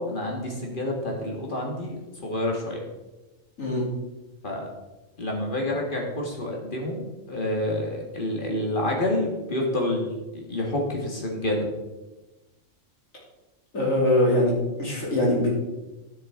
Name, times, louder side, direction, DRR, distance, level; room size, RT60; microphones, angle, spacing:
voice 1, 0.0-2.8 4.4-4.7 5.2-7.0 7.3-11.7, left 1 dB, 40° left, 0 dB, 1.9 m, -28 dB
voice 2, 13.7-15.5, left 1 dB, 90° left, -4 dB, 3.4 m, -22 dB
12.0 x 6.7 x 3.6 m, 1.1 s
omnidirectional pair, 1.3 m